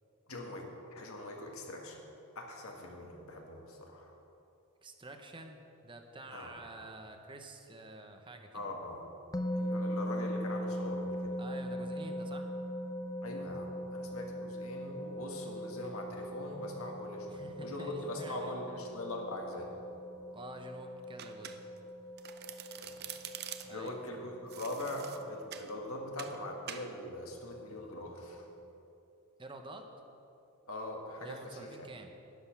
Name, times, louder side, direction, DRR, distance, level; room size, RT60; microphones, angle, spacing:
voice 1, 0.3-2.0 2.4-4.1 6.3-6.5 8.5-9.0 9.5-11.4 13.2-19.7 22.8-23.0 23.7-28.5 30.7-31.7, left 1 dB, 70° left, 1 dB, 1.8 m, -42 dB
voice 2, 4.8-8.7 11.4-12.5 17.3-18.6 20.3-21.5 23.6-24.0 29.4-29.9 31.2-32.1, right 2 dB, 25° right, 5 dB, 0.9 m, -48 dB
sound 1, 9.3-28.7, equal, 15° left, 0.4 m, -41 dB
Domestic sounds home sounds, 21.2-21.9 22.2-23.9 24.5-25.7 26.2-26.4 26.7-26.9, right 10 dB, 50° right, 0.6 m, -45 dB
11.5 x 10.5 x 5.9 m, 2.8 s
head